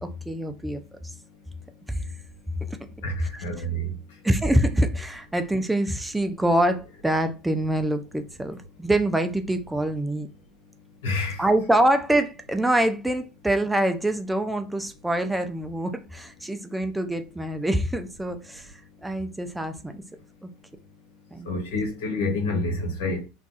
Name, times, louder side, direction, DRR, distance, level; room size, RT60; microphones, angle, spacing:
voice 1, 0.0-0.8 1.9-2.0 2.7-2.8 3.2-3.4 4.2-10.3 11.4-18.7 19.0-20.0 20.4-20.5 21.3-21.5, right 1 dB, 5° right, 0.4 m, -25 dB
voice 2, 3.0-3.9 11.0-11.4 21.4-23.3, left 2 dB, 80° left, 1.2 m, -28 dB
2.4 x 2.3 x 3.9 m
supercardioid pair, 100°, 0 cm